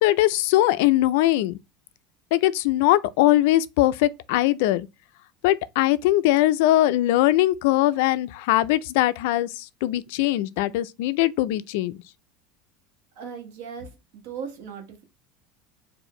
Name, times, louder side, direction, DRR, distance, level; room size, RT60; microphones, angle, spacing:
voice 1, 0.0-1.6 2.3-4.9 5.4-11.9, left 15 dB, 65° left, 0.3 m, -21 dB
voice 2, 13.1-15.0, right 6 dB, 80° right, 1.2 m, -38 dB
4.5 x 2.5 x 3.0 m
cardioid pair, 175°, 0 cm